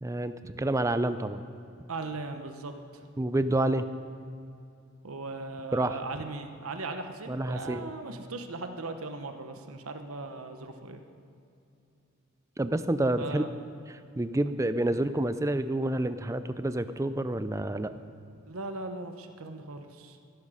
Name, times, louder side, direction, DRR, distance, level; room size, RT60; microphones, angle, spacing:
voice 1, 0.0-1.4 3.2-3.9 5.7-6.0 7.3-7.9 12.6-13.5 13.9-17.9, right 1 dB, 15° right, 11 dB, 0.4 m, -28 dB
voice 2, 1.9-3.1 5.0-11.0 13.2-13.5 14.5-14.6 18.5-20.2, right 3 dB, 85° right, 6 dB, 1.0 m, -38 dB
15.0 x 12.5 x 5.0 m, 2.5 s
head